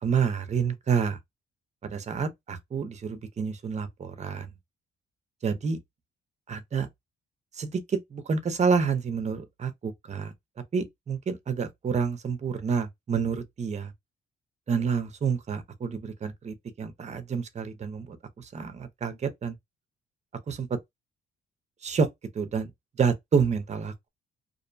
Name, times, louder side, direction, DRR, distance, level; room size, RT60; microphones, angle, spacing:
voice 1, 0.0-1.2 1.8-4.5 5.4-5.8 6.5-6.9 7.5-10.3 10.7-13.9 14.7-19.6 20.5-20.8 21.8-22.1 22.3-22.7 23.0-24.1, right 6 dB, 35° right, 0.6 m, -28 dB
2.6 x 2.1 x 2.5 m
cardioid pair, 90°, 20 cm